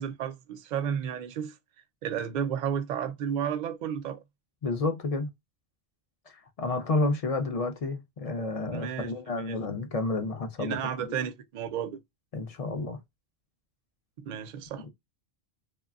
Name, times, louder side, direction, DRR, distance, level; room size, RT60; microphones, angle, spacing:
voice 1, 0.0-1.5 2.0-4.2 8.7-9.1 9.5-9.6 10.6-12.0 14.3-14.9, right 8 dB, 55° right, 0.5 m, -32 dB
voice 2, 4.6-5.3 6.3-11.1 12.3-13.0, left 3 dB, 50° left, 0.5 m, -30 dB
3.1 x 2.1 x 2.3 m
omnidirectional pair, 1.1 m